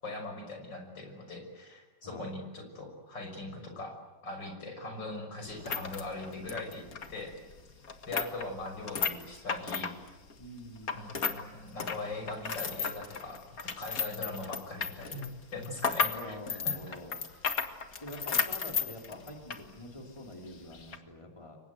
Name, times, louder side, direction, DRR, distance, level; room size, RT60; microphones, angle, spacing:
voice 1, 0.0-7.3 8.1-9.9 10.9-16.7, left 2 dB, 70° left, 4 dB, 6.7 m, -41 dB
sound 1, 5.5-11.4 11.7-19.7 20.0-20.1 20.7-21.0, left 6 dB, 50° left, 2.1 m, -34 dB
voice 2, 10.4-11.1 16.1-17.2 18.0-21.6, left 1 dB, 15° left, 1 dB, 3.8 m, -46 dB
29.5 x 23.5 x 8.0 m, 1.1 s
omnidirectional pair, 2.0 m